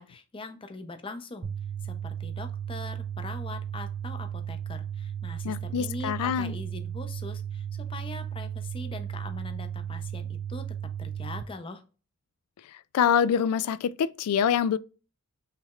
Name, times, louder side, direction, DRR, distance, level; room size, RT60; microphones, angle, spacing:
voice 1, 0.0-1.5 1.8-10.7 11.0-11.8, left 2 dB, 25° left, 0.5 m, -41 dB
sound 1, 1.4-11.4, right 9 dB, 40° right, 0.3 m, -35 dB
voice 2, 5.4-6.5 12.9-14.8, left 8 dB, 85° left, 0.3 m, -25 dB
5.7 x 3.2 x 2.3 m
head